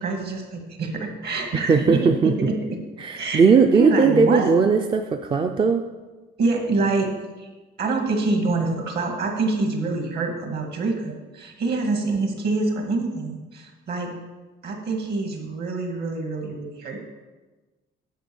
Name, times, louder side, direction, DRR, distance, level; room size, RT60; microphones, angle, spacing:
voice 1, 0.0-2.8 3.1-3.4 3.7-4.6 6.4-7.1 7.4-7.5 7.8-14.1 14.6-17.0, right 3 dB, 55° right, 3 dB, 1.9 m, -26 dB
voice 2, 1.5-2.3 3.0-5.8, right 5 dB, 25° right, 5 dB, 0.4 m, -18 dB
10.5 x 5.2 x 7.0 m, 1.2 s
cardioid pair, 160°, 20 cm